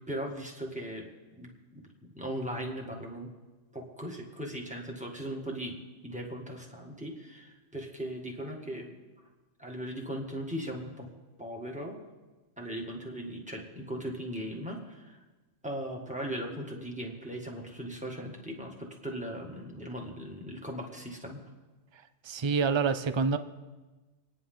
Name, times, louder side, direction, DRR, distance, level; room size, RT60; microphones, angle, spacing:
voice 1, 0.1-1.1 1.4-1.5 2.1-3.3 3.7-5.8 6.0-8.9 9.6-11.1 11.4-12.0 12.6-15.2 15.6-21.5, equal, 5° right, 0 dB, 1.9 m, -38 dB
voice 2, 22.2-23.4, right 5 dB, 45° right, 11 dB, 0.3 m, -27 dB
27.0 x 10.0 x 3.9 m, 1.2 s
omnidirectional pair, 1.4 m